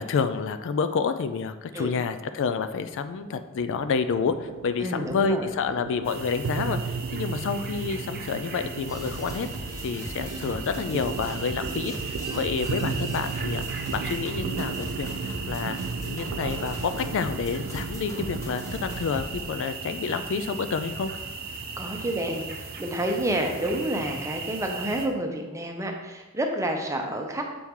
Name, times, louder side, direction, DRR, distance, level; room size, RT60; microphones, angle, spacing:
voice 1, 0.0-9.5 9.8-15.1 15.5-21.1, left 5 dB, 60° left, 10 dB, 0.4 m, -29 dB
sound 1, 2.3-19.1, right 5 dB, 65° right, 0.3 m, -35 dB
voice 2, 4.8-5.5 21.8-27.4, right 1 dB, 15° right, 2 dB, 0.7 m, -29 dB
sound 2, 6.0-25.1, right 4 dB, 45° right, 0.8 m, -38 dB
sound 3, 8.9-19.4, equal, 15° left, 1.3 m, -39 dB
6.8 x 4.6 x 3.6 m, 1.1 s
head